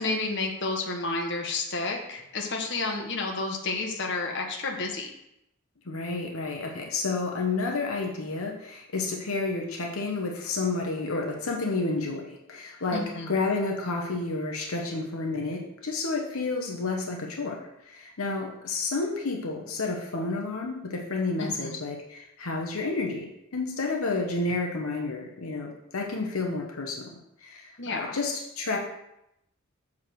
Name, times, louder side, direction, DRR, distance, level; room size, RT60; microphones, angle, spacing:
voice 1, 0.0-5.1 12.9-13.3 21.4-21.8 27.8-28.2, left 3 dB, 55° left, 1 dB, 1.1 m, -31 dB
voice 2, 5.9-13.0 13.3-23.3 23.5-27.1 27.4-28.8, left 3 dB, 80° left, 1 dB, 0.9 m, -30 dB
6.6 x 3.6 x 6.1 m, 0.82 s
head